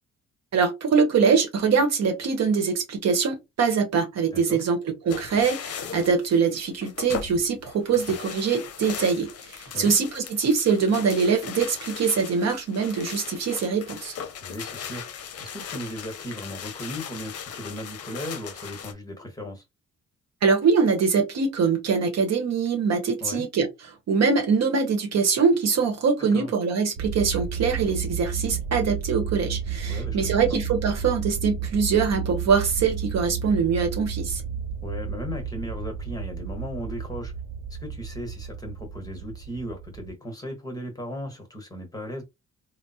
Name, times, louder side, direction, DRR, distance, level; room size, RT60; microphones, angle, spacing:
voice 1, 0.5-14.1 20.4-23.7 24.1-34.4, right 5 dB, 60° right, 1.0 m, -23 dB
voice 2, 4.3-4.6 9.7-10.0 14.4-19.6 23.2-23.5 26.3-26.5 29.9-30.6 34.8-37.3 37.7-42.2, equal, 10° left, 1.2 m, -36 dB
sound 1, 5.1-18.9, left 7 dB, 55° left, 0.6 m, -38 dB
sound 2, 27.0-40.1, right 6 dB, 80° right, 0.6 m, -32 dB
3.4 x 2.0 x 2.7 m
cardioid pair, 90°, 30 cm